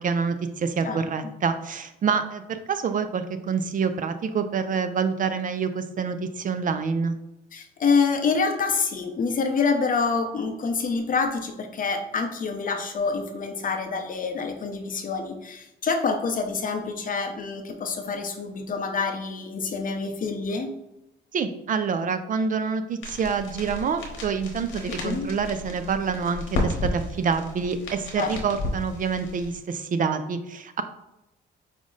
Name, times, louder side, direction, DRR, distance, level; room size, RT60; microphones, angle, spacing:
voice 1, 0.0-7.2 21.3-30.8, right 5 dB, 45° right, 9 dB, 0.4 m, -27 dB
voice 2, 0.8-1.3 7.5-20.7 25.0-25.3 28.2-28.3, left 4 dB, 45° left, 5 dB, 0.6 m, -27 dB
sound 1, 23.0-29.6, left 2 dB, 85° left, 0.9 m, -33 dB
5.0 x 2.1 x 3.7 m, 0.89 s
cardioid pair, 90°, 20 cm